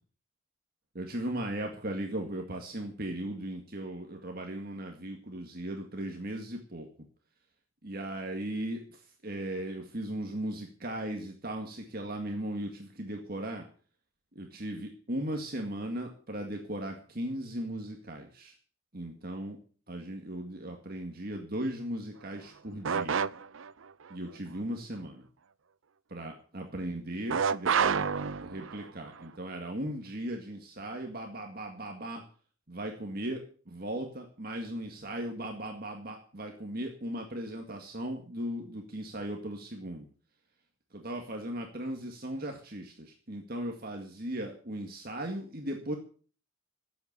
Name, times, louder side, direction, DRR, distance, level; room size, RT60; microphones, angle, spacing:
voice 1, 1.0-6.9 7.8-13.6 14.4-18.5 18.9-19.6 19.9-23.2 24.1-25.3 26.1-32.2 32.7-40.1 40.9-45.9, right 1 dB, 45° right, 2 dB, 2.0 m, -37 dB
sound 1, 22.8-23.7 27.3-28.9, right 6 dB, 70° right, 0.6 m, -28 dB
13.5 x 8.2 x 8.2 m, 0.43 s
head